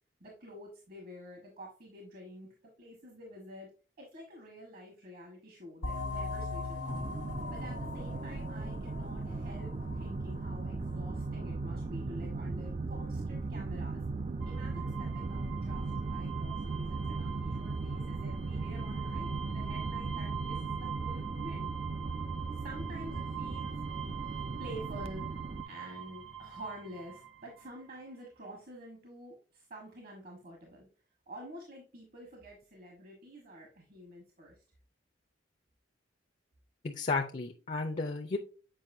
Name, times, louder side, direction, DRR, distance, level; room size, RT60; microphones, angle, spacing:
voice 1, 0.2-3.7 4.0-7.0 7.5-14.0 14.4-21.7 22.6-23.8 24.6-25.4 25.7-30.9 31.3-34.6, equal, 50° right, 1 dB, 1.3 m, -49 dB
sound 1, 5.8-11.1, left 3 dB, 85° left, 1.4 m, -40 dB
sound 2, 6.9-25.6, right 3 dB, 30° right, 0.3 m, -37 dB
sound 3, 14.4-27.8, right 8 dB, 90° right, 0.8 m, -44 dB
voice 2, 36.8-38.4, left 3 dB, 35° left, 4 dB, 0.5 m, -33 dB
7.6 x 5.1 x 2.6 m, 0.37 s
head